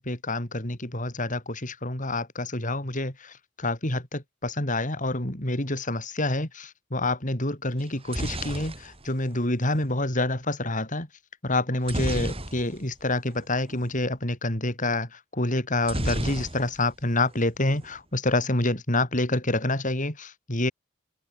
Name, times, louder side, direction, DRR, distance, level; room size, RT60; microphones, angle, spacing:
voice 1, 0.0-11.1 11.4-20.7, left 2 dB, 40° left, 5.2 m, -27 dB
sound 1, 7.8-9.9 11.8-13.0 13.3-13.4 13.7-13.9 15.8-17.0 17.3-17.9, right 1 dB, 30° right, 7.4 m, -32 dB
open air
head